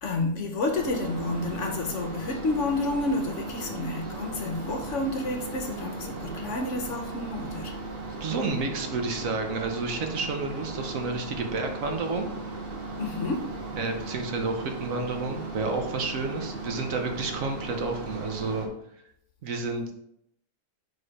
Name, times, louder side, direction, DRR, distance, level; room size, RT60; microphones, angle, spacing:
voice 1, 0.0-7.8 13.0-13.4, left 2 dB, 55° left, 3 dB, 1.0 m, -30 dB
sound 1, 0.7-18.7, right 3 dB, 40° right, 1.2 m, -37 dB
voice 2, 8.2-12.3 13.7-18.7 19.4-19.9, right 3 dB, 60° right, 4 dB, 1.2 m, -30 dB
4.8 x 4.4 x 4.8 m, 0.74 s
omnidirectional pair, 1.7 m